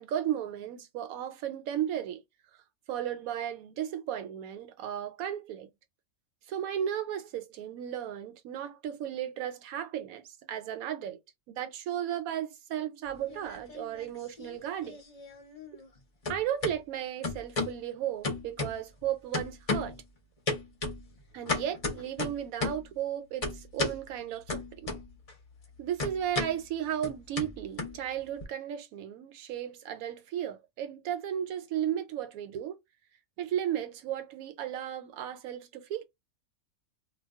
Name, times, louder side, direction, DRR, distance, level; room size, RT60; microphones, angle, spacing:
voice 1, 0.0-2.2 2.9-5.7 6.5-11.2 11.5-15.0 16.3-19.9 21.3-24.9 25.8-32.8 33.4-36.0, right 10 dB, 75° right, 1.0 m, -35 dB
sound 1, 13.1-14.1 14.4-16.0 16.2-16.8 17.2-17.8 18.2-19.0 19.3-20.0 20.5-22.9 23.4-24.0 24.5-25.3 25.6-28.4, left 3 dB, 45° left, 0.5 m, -34 dB
2.3 x 2.2 x 3.5 m
omnidirectional pair, 1.5 m